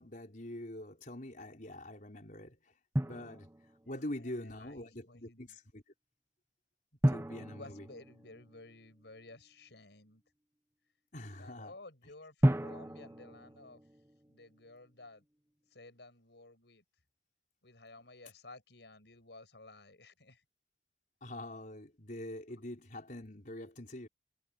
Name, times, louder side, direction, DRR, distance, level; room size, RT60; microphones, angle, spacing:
voice 1, 0.0-5.8 7.1-7.9 11.1-11.7 21.2-24.1, left 1 dB, 50° left, 4.8 m, -45 dB
Drum, 3.0-4.0 7.0-8.9 12.4-14.4, right 1 dB, 15° right, 0.9 m, -33 dB
voice 2, 4.2-5.6 7.4-10.2 11.4-13.8 14.3-15.2 15.7-16.8 17.6-20.4, left 2 dB, 75° left, 6.5 m, -54 dB
head